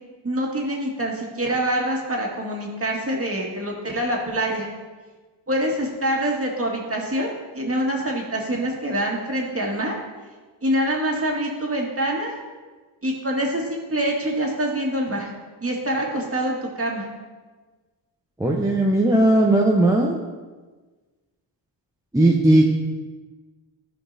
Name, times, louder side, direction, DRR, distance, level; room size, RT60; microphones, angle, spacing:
voice 1, 0.2-4.7 5.5-10.0 10.6-12.3 13.0-15.3 15.6-17.1, right 1 dB, 25° right, -1 dB, 1.9 m, -25 dB
voice 2, 18.4-20.2 22.1-22.6, right 1 dB, 5° right, -2 dB, 0.8 m, -17 dB
12.5 x 5.2 x 2.7 m, 1.3 s
supercardioid pair, 55°, 50 cm